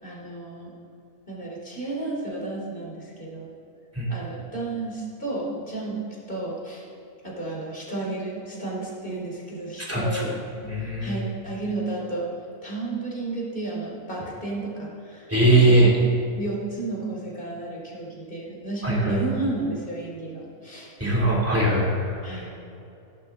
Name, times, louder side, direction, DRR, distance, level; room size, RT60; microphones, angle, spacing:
voice 1, 0.0-0.7 1.3-3.5 4.1-6.0 6.3-6.9 7.2-10.3 11.0-12.3 12.6-16.0 16.4-20.9 22.2-22.5, right 2 dB, 35° left, -4 dB, 3.2 m, -32 dB
voice 2, 9.9-10.3 10.6-11.1 15.3-15.9 18.8-19.1 21.0-22.1, right 1 dB, 10° right, -4 dB, 2.7 m, -20 dB
16.0 x 11.0 x 3.7 m, 2.7 s
omnidirectional pair, 1.5 m